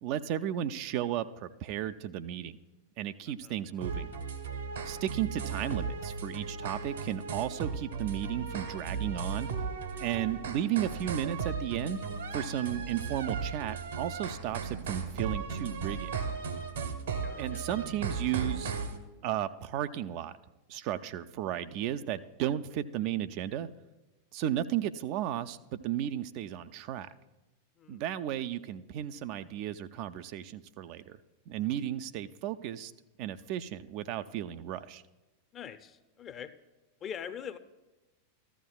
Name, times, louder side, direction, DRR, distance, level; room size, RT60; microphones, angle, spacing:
voice 1, 0.0-2.5 3.0-4.1 4.9-9.5 10.0-12.0 12.3-16.1 17.4-18.7 19.2-20.4 20.7-23.7 24.3-27.1 27.9-31.2 31.5-32.9 33.2-35.0, right 11 dB, 45° right, 11 dB, 0.4 m, -34 dB
sound 1, 3.8-19.0, right 5 dB, 65° right, 1.1 m, -36 dB
voice 2, 17.2-17.6 27.8-28.0 35.5-36.5 37.0-37.6, left 8 dB, 25° left, 11 dB, 0.6 m, -43 dB
14.0 x 12.0 x 2.3 m, 1.1 s
figure-of-eight pair, 90°, 0 cm